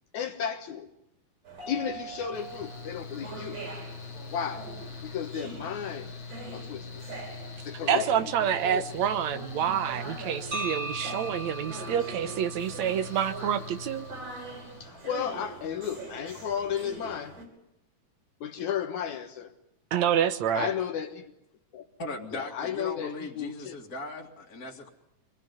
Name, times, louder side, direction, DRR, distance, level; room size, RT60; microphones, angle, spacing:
voice 1, 0.1-0.9 1.7-3.6 4.3-4.7 5.0-6.1 6.5-7.0 7.7-8.9 14.8-17.4 18.4-19.5 20.5-21.3 21.7-21.9 22.3-23.7, left 8 dB, 75° left, 4 dB, 2.7 m, -34 dB
sound 1, 1.5-17.4, right 3 dB, 55° right, 6.8 m, -43 dB
Mechanical fan, 2.3-14.9, left 5 dB, 50° left, 2.5 m, -43 dB
voice 2, 7.9-14.1 19.9-20.7, right 9 dB, 70° right, 12 dB, 2.3 m, -27 dB
sound 2, 10.5-14.6, right 2 dB, 30° right, 2.3 m, -39 dB
voice 3, 22.0-24.9, left 2 dB, 30° left, -2 dB, 2.6 m, -38 dB
25.5 x 20.0 x 9.5 m, 0.82 s
omnidirectional pair, 3.5 m